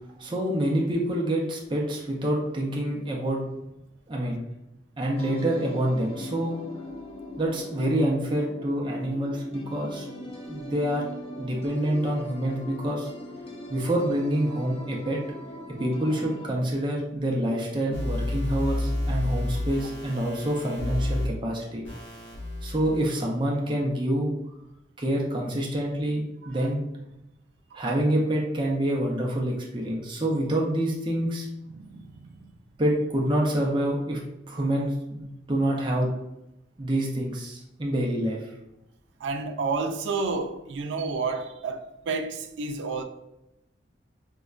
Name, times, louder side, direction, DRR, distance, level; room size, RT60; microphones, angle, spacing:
voice 1, 0.2-3.4 4.1-4.4 5.0-6.6 7.4-10.1 10.5-11.1 11.4-13.1 13.7-15.2 15.8-21.8 22.6-24.3 25.0-26.8 27.7-31.5 32.8-34.2 34.5-36.1 36.8-38.5, right 1 dB, 25° right, 0.5 m, -27 dB
sound 1, 5.1-16.5, left 1 dB, 30° left, 0.5 m, -40 dB
sound 2, 17.9-21.3 21.8-23.2, left 1 dB, 90° left, 1.2 m, -30 dB
voice 2, 31.7-32.5 39.2-43.0, right 4 dB, 80° right, 0.4 m, -30 dB
5.3 x 2.1 x 2.4 m
head